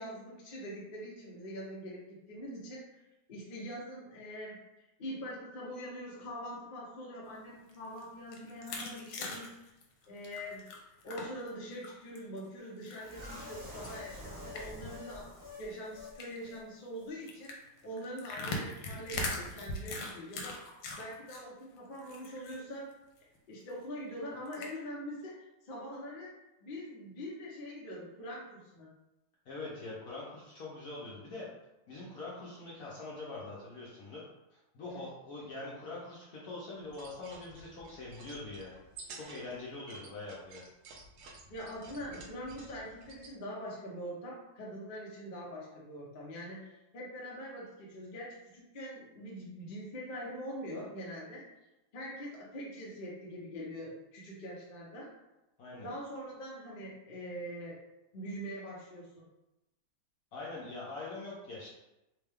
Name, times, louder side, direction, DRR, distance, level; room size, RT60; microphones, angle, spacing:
voice 1, 0.0-2.9 3.3-4.6 5.0-9.7 10.1-10.6 11.0-15.3 15.6-20.7 20.9-22.9 23.5-26.3 26.6-28.9 34.9-35.1 41.5-51.4 51.9-55.1 55.8-57.8 58.1-59.3, equal, 40° left, -4 dB, 0.7 m, -43 dB
sound 1, 7.6-11.5 11.8-12.4 12.9-15.0 15.3-15.4 15.6-15.8 16.1-16.5 17.3-21.4 21.8-22.6 22.9-23.0 23.3-23.4 24.5-24.7, left 2 dB, 80° left, 1.4 m, -40 dB
sound 2, 13.0-16.2 16.4-16.6 17.0-17.1, left 1 dB, 60° right, 0.5 m, -47 dB
voice 2, 29.5-31.5 31.9-34.2 34.7-38.8 39.1-40.6 55.6-55.9 60.3-61.7, left 2 dB, 60° left, -6 dB, 1.0 m, -43 dB
sound 3, 36.8-43.3, right 3 dB, 75° right, 1.3 m, -52 dB
3.6 x 2.3 x 3.4 m, 0.95 s
omnidirectional pair, 2.1 m